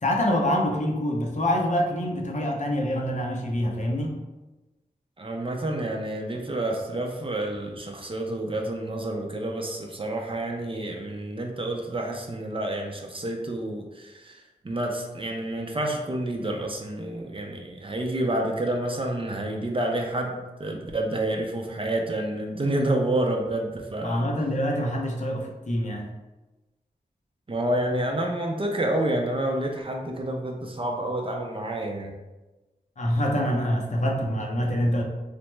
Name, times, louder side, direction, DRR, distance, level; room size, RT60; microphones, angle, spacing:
voice 1, 0.0-4.2 24.0-26.1 33.0-35.0, equal, 45° left, 0 dB, 0.6 m, -25 dB
voice 2, 5.2-24.3 27.5-32.1, right 1 dB, 30° right, 1 dB, 0.5 m, -29 dB
3.2 x 2.0 x 3.1 m, 1.1 s
cardioid pair, 45°, 17 cm